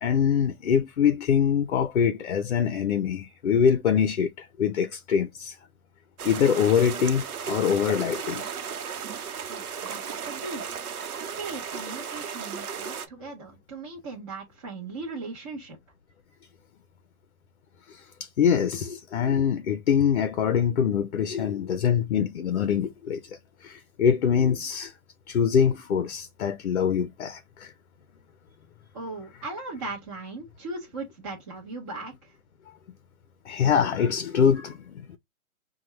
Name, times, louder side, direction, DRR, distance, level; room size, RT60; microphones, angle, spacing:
voice 1, 0.0-5.6 6.2-8.5 17.9-24.9 25.3-27.7 33.5-35.2, left 7 dB, 50° left, 0.6 m, -24 dB
sound 1, 6.2-13.1, right 7 dB, 80° right, 0.9 m, -35 dB
voice 2, 9.5-10.6 11.2-15.8 28.9-32.3, right 3 dB, 20° right, 0.8 m, -38 dB
4.4 x 2.3 x 3.0 m
hypercardioid pair, 165°, 44 cm